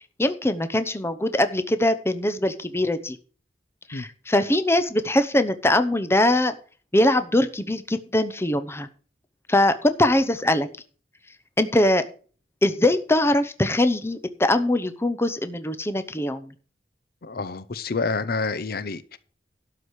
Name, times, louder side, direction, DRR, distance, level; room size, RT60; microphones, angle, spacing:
voice 1, 0.2-3.2 3.9-6.6 6.9-8.9 9.5-10.7 11.6-12.0 12.6-16.5, left 1 dB, 15° left, 10 dB, 0.8 m, -22 dB
voice 2, 17.2-19.2, left 4 dB, 60° left, 15 dB, 0.7 m, -28 dB
12.0 x 4.9 x 8.2 m, 0.40 s
head